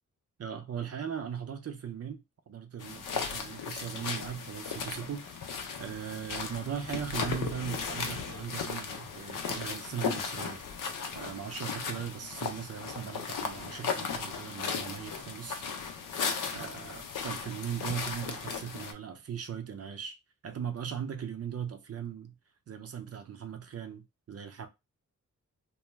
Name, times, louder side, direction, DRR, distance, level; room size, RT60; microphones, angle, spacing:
voice 1, 0.4-5.4 5.8-10.6 11.1-15.6 16.5-20.2 20.4-22.3 22.7-24.7, right 8 dB, 50° right, 0.5 m, -39 dB
sound 1, 2.8-18.9, left 6 dB, 85° left, 0.6 m, -36 dB
2.4 x 2.2 x 3.1 m
wide cardioid pair, 95°, 31 cm